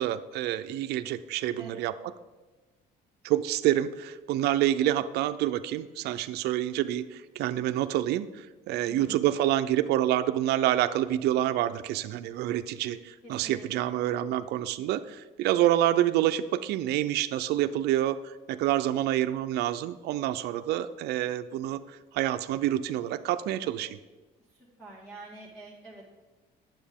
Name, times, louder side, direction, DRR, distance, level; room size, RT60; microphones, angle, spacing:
voice 1, 0.0-1.9 3.2-24.0, right 13 dB, 75° right, 11 dB, 0.4 m, -27 dB
voice 2, 1.6-1.9 8.8-9.3 13.2-14.0 24.5-26.0, right 1 dB, 5° left, -5 dB, 1.7 m, -47 dB
9.3 x 7.3 x 3.5 m, 1.2 s
cardioid pair, 110°, 17 cm